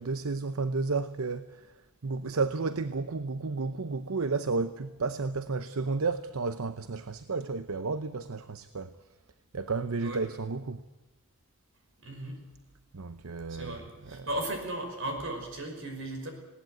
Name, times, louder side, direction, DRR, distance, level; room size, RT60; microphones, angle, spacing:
voice 1, 0.0-9.0 9.5-10.8 12.9-14.3, right 4 dB, 80° right, 0.8 m, -32 dB
voice 2, 12.0-12.4 13.5-16.3, right 1 dB, 60° right, 5.4 m, -36 dB
19.5 x 18.0 x 9.3 m
head